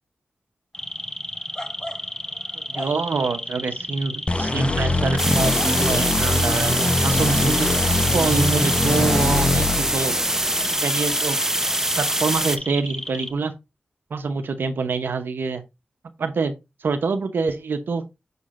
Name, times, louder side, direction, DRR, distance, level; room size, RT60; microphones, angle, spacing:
sound 1, 0.7-13.3, left 1 dB, 15° left, 1.1 m, -33 dB
voice 1, 2.7-10.1 10.6-11.4 12.0-13.5 14.1-15.6 16.2-16.5 16.8-18.0, right 4 dB, 80° right, 0.8 m, -25 dB
sound 2, 4.3-10.7, left 2 dB, 35° left, 0.7 m, -23 dB
sound 3, 5.2-12.6, right 1 dB, 15° right, 0.7 m, -24 dB
6.8 x 6.5 x 2.5 m
cardioid pair, 50°, 4 cm